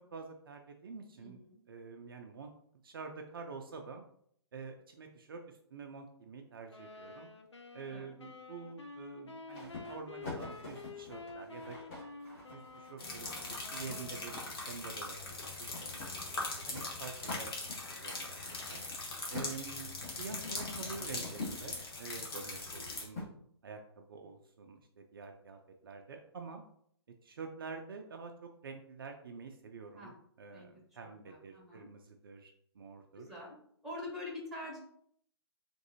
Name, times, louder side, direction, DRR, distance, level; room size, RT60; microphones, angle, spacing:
voice 1, 0.1-2.5 2.8-4.0 4.5-7.3 7.7-11.8 12.5-17.5 17.9-18.4 18.7-18.8 19.3-23.3 23.6-26.6 27.2-33.3, right 4 dB, 50° right, 4 dB, 0.4 m, -47 dB
voice 2, 1.1-1.6 7.9-8.0 16.0-16.5 22.7-23.0 29.9-30.1 30.5-30.7 31.0-31.9 33.2-33.6 33.8-34.8, left 2 dB, ahead, -4 dB, 1.0 m, -46 dB
sound 1, 6.7-14.7, left 3 dB, 80° left, 0.6 m, -50 dB
sound 2, 9.5-14.9 15.7-22.1 23.2-23.3, left 3 dB, 30° left, 1.4 m, -46 dB
sound 3, 13.0-23.1, left 2 dB, 55° left, 1.1 m, -41 dB
3.6 x 2.6 x 2.8 m, 0.66 s
figure-of-eight pair, 130°, 14 cm